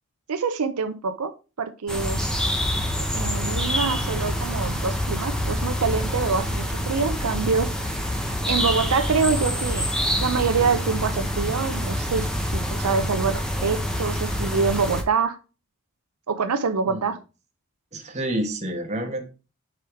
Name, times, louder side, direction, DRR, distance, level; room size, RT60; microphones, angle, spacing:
voice 1, 0.3-1.3 1.6-2.3 3.1-8.1 8.5-9.9 10.2-12.3 12.5-15.4 16.3-17.2, right 5 dB, 85° right, 10 dB, 0.6 m, -25 dB
sound 1, 1.9-15.0, equal, 5° left, 0.8 m, -26 dB
voice 2, 17.9-19.2, right 1 dB, 30° right, 3 dB, 1.2 m, -29 dB
4.9 x 4.7 x 4.7 m, 0.32 s
head